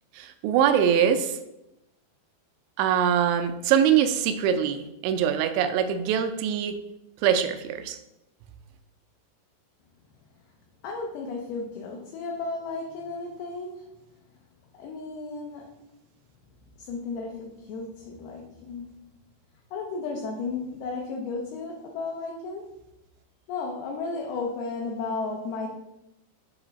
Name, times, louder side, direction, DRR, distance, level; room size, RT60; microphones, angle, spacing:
voice 1, 0.1-1.4 2.8-6.7 7.2-8.0, right 8 dB, 85° right, 8 dB, 2.7 m, -23 dB
voice 2, 10.8-14.0 14.7-15.7 16.8-19.0 19.7-22.7 23.5-25.7, left 3 dB, 80° left, 0 dB, 2.2 m, -34 dB
8.0 x 3.3 x 4.0 m, 0.88 s
omnidirectional pair, 5.4 m